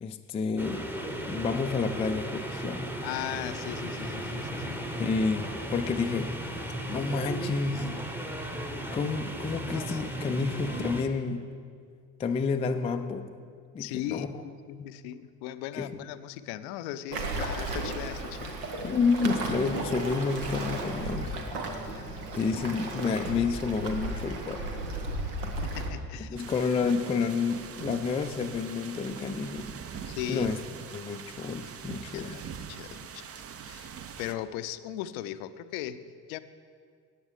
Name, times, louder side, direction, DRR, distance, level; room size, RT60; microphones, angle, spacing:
voice 1, 0.0-0.9 1.3-3.0 5.0-6.3 6.9-7.9 8.9-11.5 12.2-13.3 13.7-14.3 14.8-14.9 15.7-16.1 18.8-21.4 22.3-24.6 26.3-29.7 30.3-30.6 30.9-32.4, left 4 dB, 15° left, 6 dB, 0.3 m, -30 dB
sound 1, 0.6-11.0, right 1 dB, 5° right, 1.0 m, -36 dB
voice 2, 3.0-4.8 13.8-18.5 25.6-26.4 30.1-30.5 31.9-33.3 33.6-33.9 34.2-36.4, left 12 dB, 60° left, 13 dB, 0.6 m, -38 dB
Waves surf, 17.1-25.9, right 2 dB, 70° right, 1.3 m, -34 dB
sound 2, 26.4-34.3, right 7 dB, 30° right, 0.6 m, -42 dB
13.5 x 8.8 x 3.3 m, 2.1 s
figure-of-eight pair, 55°, 48 cm